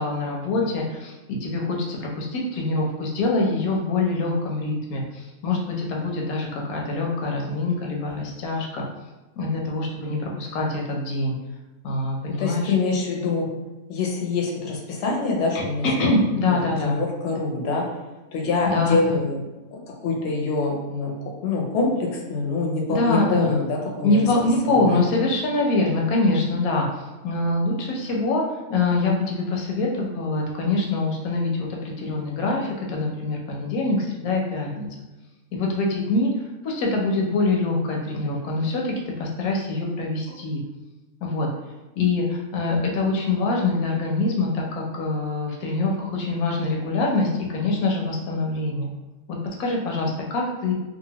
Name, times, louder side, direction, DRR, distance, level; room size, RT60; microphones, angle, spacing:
voice 1, 0.0-8.8 9.4-11.3 11.8-12.7 15.8-17.0 18.6-19.1 22.9-23.6 24.0-28.4 28.7-34.9 35.5-40.6 41.2-41.5 42.0-48.9 49.3-50.7, left 2 dB, 85° left, 0 dB, 1.1 m, -24 dB
voice 2, 12.4-13.5 13.9-16.1 16.5-17.8 18.3-19.4 19.7-21.1 21.4-24.2 24.6-25.0, left 3 dB, 60° left, -1 dB, 0.7 m, -25 dB
2.9 x 2.4 x 2.8 m, 1.1 s
omnidirectional pair, 1.5 m